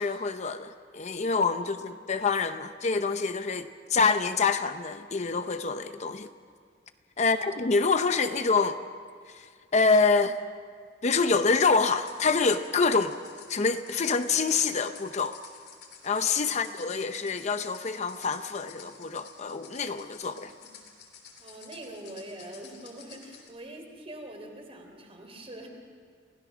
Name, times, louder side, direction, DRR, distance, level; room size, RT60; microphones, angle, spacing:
voice 1, 0.0-6.3 7.2-8.8 9.3-10.4 11.0-13.2 13.5-15.4 16.0-20.5, left 4 dB, 40° left, 9 dB, 0.6 m, -26 dB
voice 2, 7.2-7.7 16.5-16.7 20.2-20.7 21.4-25.7, right 1 dB, 30° right, 2 dB, 3.4 m, -44 dB
sound 1, 11.5-23.5, left 7 dB, 60° left, 3.2 m, -51 dB
28.5 x 16.0 x 6.1 m, 2.1 s
head